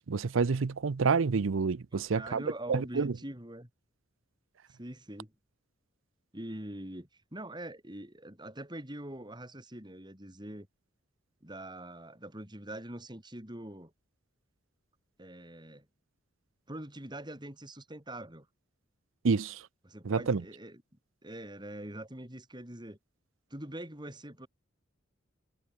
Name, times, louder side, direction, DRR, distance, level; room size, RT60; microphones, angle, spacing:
voice 1, 0.0-2.4 2.7-3.1 19.2-19.6 20.0-20.4, right 5 dB, 80° right, 0.6 m, -28 dB
voice 2, 1.9-3.7 4.7-5.3 6.3-10.7 11.4-13.9 15.2-15.9 16.7-18.5 19.8-20.8 21.2-23.0 23.5-24.5, right 1 dB, 20° right, 4.7 m, -43 dB
head